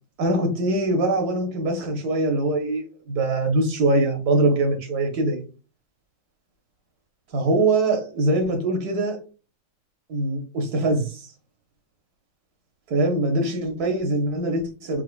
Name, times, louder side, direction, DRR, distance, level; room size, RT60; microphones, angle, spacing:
voice 1, 0.2-5.4 7.3-9.2 10.1-11.2 12.9-15.0, right 2 dB, 60° right, 1.4 m, -23 dB
4.6 x 2.4 x 2.3 m
omnidirectional pair, 2.0 m